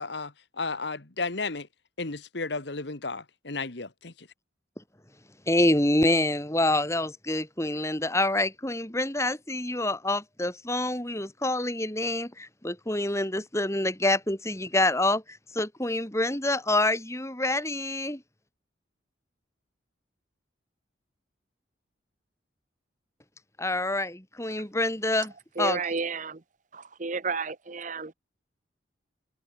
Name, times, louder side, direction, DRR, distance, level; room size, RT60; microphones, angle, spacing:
voice 1, 0.0-1.7 2.0-4.3, left 3 dB, 65° left, 1.6 m, -33 dB
voice 2, 5.5-15.2 15.5-18.2 23.6-25.3 25.6-25.8, left 1 dB, 15° left, 3.2 m, -26 dB
voice 3, 25.6-26.4 27.0-28.1, right 4 dB, 40° right, 0.9 m, -31 dB
head